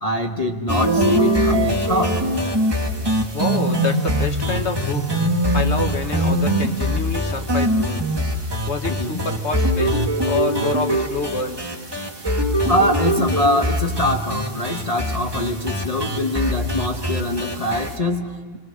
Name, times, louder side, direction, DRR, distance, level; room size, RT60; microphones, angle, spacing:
voice 1, 0.0-2.2 8.9-9.2 12.7-18.6, left 1 dB, 30° left, 2 dB, 1.1 m, -23 dB
sound 1, 0.7-17.9, equal, 15° right, 1.7 m, -22 dB
voice 2, 3.3-5.1 5.5-8.0 8.7-10.0 10.3-11.6, left 4 dB, 55° left, 5 dB, 1.6 m, -27 dB
27.0 x 21.5 x 6.4 m, 1.5 s
omnidirectional pair, 1.5 m